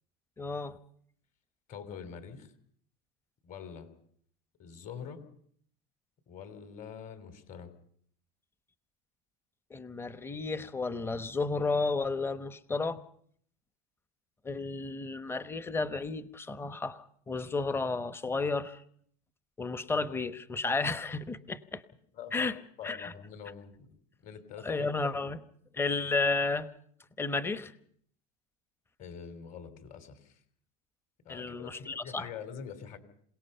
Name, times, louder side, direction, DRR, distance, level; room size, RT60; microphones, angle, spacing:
voice 1, 0.4-0.8 9.7-13.0 14.4-18.8 19.6-21.8 22.3-22.6 22.8-23.1 24.6-25.4 25.7-26.7 27.2-27.7 31.3-32.3, left 3 dB, 10° left, 12 dB, 1.0 m, -32 dB
voice 2, 1.7-2.5 3.4-3.9 4.6-5.2 6.3-7.7 22.1-22.5 22.8-23.9 24.2-24.9 29.0-30.4 31.2-33.0, left 7 dB, 40° left, 10 dB, 3.4 m, -45 dB
27.5 x 18.0 x 5.7 m, 0.63 s
supercardioid pair, 130°, 21 cm